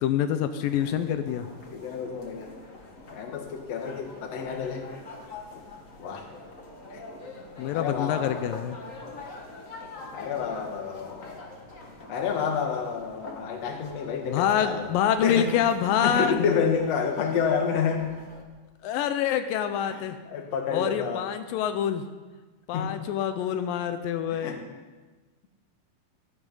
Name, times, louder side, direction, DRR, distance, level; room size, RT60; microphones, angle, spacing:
voice 1, 0.0-1.5 7.6-8.8 14.2-16.5 18.8-20.2 20.7-22.0 22.7-24.5, left 9 dB, 85° left, 9 dB, 2.4 m, -26 dB
sound 1, 0.6-18.4, left 2 dB, 35° left, 1.4 m, -45 dB
voice 2, 1.7-2.5 3.1-4.9 6.0-6.3 6.9-7.0 7.7-8.4 10.1-11.4 12.1-14.9 15.2-15.5 15.8-18.1 19.9-20.0 20.3-21.3 22.7-22.9 24.3-24.6, left 6 dB, 55° left, 4 dB, 2.5 m, -29 dB
14.5 x 13.5 x 5.4 m, 1.3 s
omnidirectional pair, 3.9 m